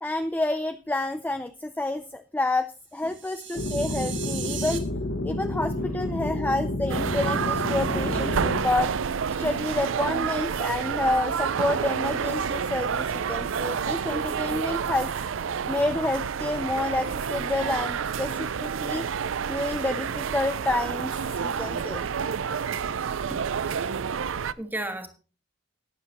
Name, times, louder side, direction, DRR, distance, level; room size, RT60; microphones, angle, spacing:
voice 1, 0.0-2.7 2.9-4.9 5.2-8.9 9.4-15.1 15.7-19.1 19.5-22.1, left 2 dB, 10° left, 0.4 m, -29 dB
sound 1, 3.0-4.8, right 10 dB, 70° right, 2.0 m, -37 dB
sound 2, 3.6-8.6, left 1 dB, 65° left, 1.3 m, -29 dB
voice 2, 5.8-6.3 9.5-9.6 21.6-21.7 23.3-23.4 24.6-25.1, right 1 dB, 10° right, 1.6 m, -36 dB
sound 3, 6.9-24.5, right 6 dB, 85° right, 0.5 m, -29 dB
12.0 x 9.4 x 4.1 m
head